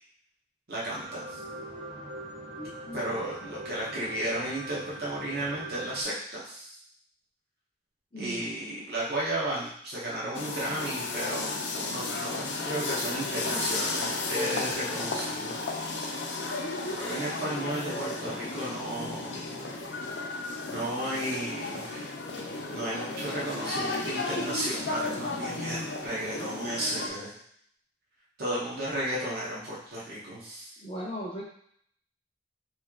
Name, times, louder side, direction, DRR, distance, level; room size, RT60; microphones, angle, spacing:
voice 1, 0.7-1.4 2.9-6.8 8.2-11.5 11.7-15.6 17.0-19.4 20.7-22.2 22.7-27.4 28.4-30.7, right 1 dB, 55° right, -6 dB, 1.0 m, -34 dB
sound 1, 0.9-6.0, right 1 dB, 25° right, 1.0 m, -42 dB
voice 2, 2.5-3.5 8.1-8.5 30.8-31.4, equal, 30° left, -4 dB, 0.6 m, -39 dB
sound 2, 10.3-27.1, left 3 dB, 70° left, 0.6 m, -34 dB
3.2 x 2.8 x 3.6 m, 0.65 s
head